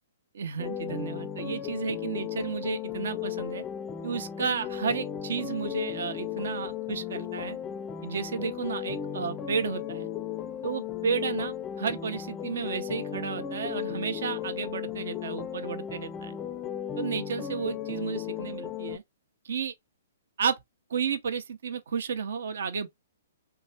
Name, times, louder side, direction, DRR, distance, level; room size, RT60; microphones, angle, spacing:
voice 1, 0.3-3.6 4.0-7.6 8.0-10.1 10.6-16.4 17.0-19.0 19.4-19.7 20.4-20.6 20.9-22.9, right 6 dB, 65° right, 0.7 m, -32 dB
sound 1, 0.6-19.0, left 9 dB, 20° left, 0.4 m, -35 dB
3.4 x 3.1 x 4.3 m
figure-of-eight pair, 120°, 0 cm